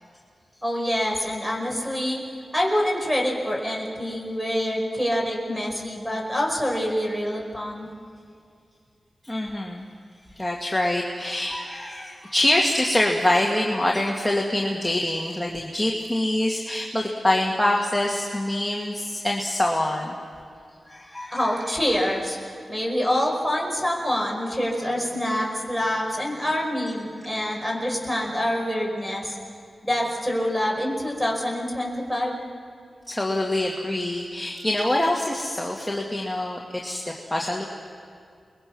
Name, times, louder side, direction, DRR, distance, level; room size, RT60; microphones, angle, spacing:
voice 1, 0.6-2.2 2.5-7.9 21.3-29.4 29.8-32.4, equal, 5° right, -1 dB, 5.6 m, -26 dB
voice 2, 9.2-9.9 10.3-20.2 20.9-21.6 27.4-27.5 33.1-37.6, left 1 dB, 10° left, -1 dB, 2.0 m, -25 dB
29.0 x 22.0 x 6.2 m, 2.3 s
wide cardioid pair, 80°, 0 cm